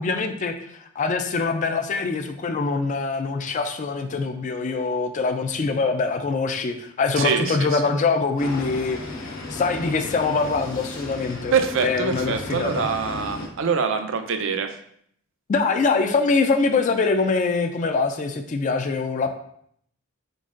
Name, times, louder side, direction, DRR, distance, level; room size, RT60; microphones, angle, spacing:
voice 1, 0.0-11.5 11.8-12.8 15.5-19.3, left 4 dB, 35° left, 5 dB, 0.3 m, -24 dB
voice 2, 7.2-7.9 11.5-14.8, right 6 dB, 65° right, 8 dB, 0.5 m, -24 dB
sound 1, 8.4-13.5, left 2 dB, 70° left, 0.9 m, -35 dB
4.3 x 3.9 x 2.4 m, 0.67 s
head